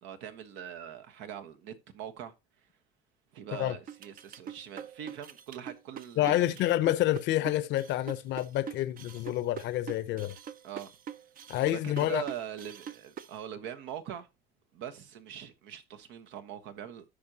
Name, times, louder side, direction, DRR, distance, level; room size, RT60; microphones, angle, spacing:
voice 1, 0.0-2.3 3.3-6.5 10.6-10.9 11.7-14.3 14.7-17.0, right 10 dB, 85° right, 1.1 m, -42 dB
sound 1, 3.9-13.4, right 8 dB, 50° right, 0.6 m, -43 dB
voice 2, 6.2-10.4 11.5-12.2, left 14 dB, 75° left, 0.7 m, -28 dB
14.0 x 5.2 x 2.8 m
cardioid pair, 105°, 19 cm